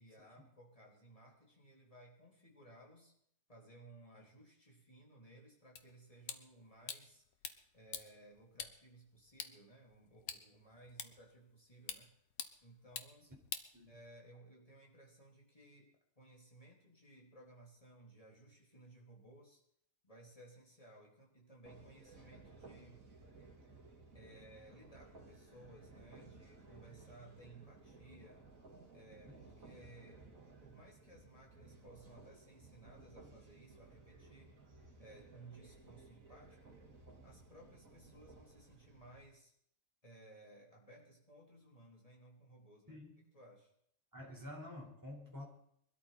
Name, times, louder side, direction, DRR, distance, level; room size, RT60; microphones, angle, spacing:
voice 1, 0.0-3.1 3.5-7.2 7.7-12.1 12.6-13.3 13.9-19.6 20.0-23.1 24.1-28.4 28.9-30.3 30.6-34.6 35.0-36.8 37.2-39.5 40.0-43.0 43.3-43.7, right 1 dB, 25° left, -2 dB, 3.5 m, -59 dB
sound 1, 5.8-14.4, left 7 dB, 85° left, 1.5 m, -50 dB
sound 2, 21.6-39.2, right 3 dB, 75° right, 3.0 m, -59 dB
voice 2, 44.1-45.4, left 1 dB, 15° right, -1 dB, 4.4 m, -49 dB
22.0 x 13.0 x 4.2 m, 0.70 s
omnidirectional pair, 1.4 m